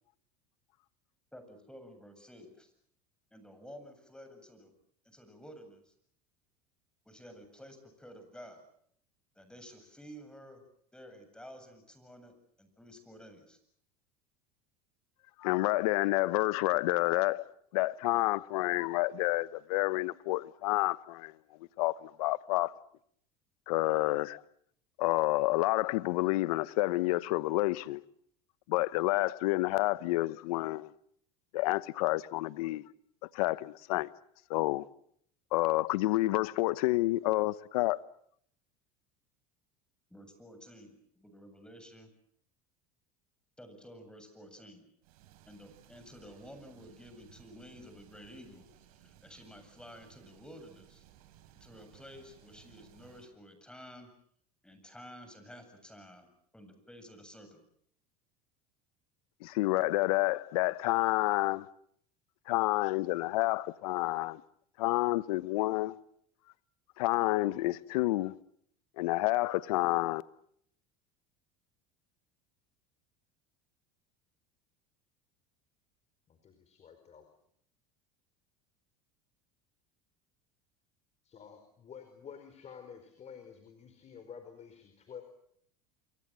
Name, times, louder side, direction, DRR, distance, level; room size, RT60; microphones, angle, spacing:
voice 1, 1.3-2.7 3.3-4.7 5.0-5.9 7.1-8.6 9.4-10.6 10.9-13.6 40.1-42.1 43.6-44.9 45.5-48.7 48.9-51.0 51.6-54.1 54.6-57.6, equal, 5° left, 7.7 m, -52 dB
voice 2, 15.4-22.7 23.7-24.4 25.0-28.0 28.7-30.9 31.5-32.9 33.2-34.1 34.5-34.9 35.5-38.0 59.4-61.7 62.4-64.4 64.8-66.0 67.0-68.4 69.0-70.2, left 19 dB, 75° left, 1.0 m, -29 dB
sound 1, 45.0-53.3, right 12 dB, 75° right, 4.9 m, -60 dB
voice 3, 76.3-77.3 81.2-85.2, left 7 dB, 35° left, 4.8 m, -50 dB
28.0 x 24.0 x 7.6 m
hypercardioid pair, 95°, 19 cm